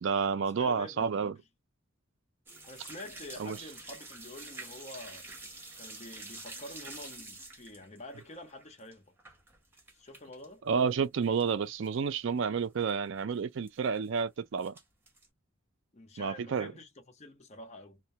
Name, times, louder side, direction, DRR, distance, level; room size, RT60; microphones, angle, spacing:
voice 1, 0.0-1.3 3.4-3.6 10.7-14.7 16.2-16.7, right 6 dB, 60° right, 0.4 m, -30 dB
voice 2, 0.6-1.4 2.7-5.3 5.8-9.1 9.9-10.6 15.9-18.0, left 2 dB, 30° left, 0.6 m, -47 dB
sound 1, 2.5-10.5 10.8-11.5 11.8-11.9 12.4-12.5 12.6-12.9 13.7-14.2 14.6-15.3, right 3 dB, 10° right, 0.7 m, -48 dB
2.2 x 2.1 x 2.7 m
head